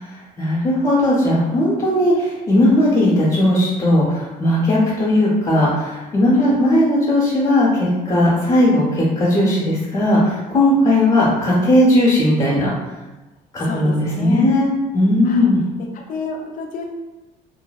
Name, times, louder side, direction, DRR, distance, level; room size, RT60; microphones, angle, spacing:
voice 1, 0.4-12.7 13.5-14.7 14.9-15.6, left 1 dB, 30° left, -7 dB, 0.8 m, -17 dB
voice 2, 13.6-14.5 15.2-15.5 16.1-16.9, left 1 dB, 55° left, 2 dB, 0.5 m, -28 dB
2.6 x 2.0 x 2.3 m, 1.1 s
cardioid pair, 110°, 17 cm